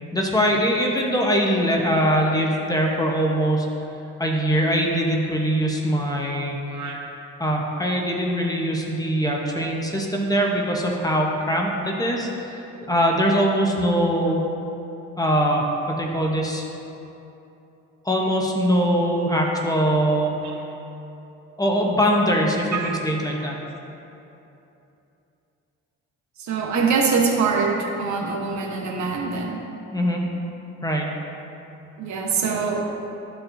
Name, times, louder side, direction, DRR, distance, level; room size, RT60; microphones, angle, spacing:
voice 1, 0.1-3.7 4.2-6.6 7.4-14.4 15.2-16.6 18.0-20.4 21.6-23.5 29.9-30.2 30.8-31.2, equal, 10° left, -1 dB, 0.9 m, -22 dB
voice 2, 26.4-29.6 32.0-32.9, right 5 dB, 65° right, 0 dB, 1.0 m, -24 dB
12.0 x 4.5 x 2.6 m, 2.9 s
cardioid pair, 90°, 30 cm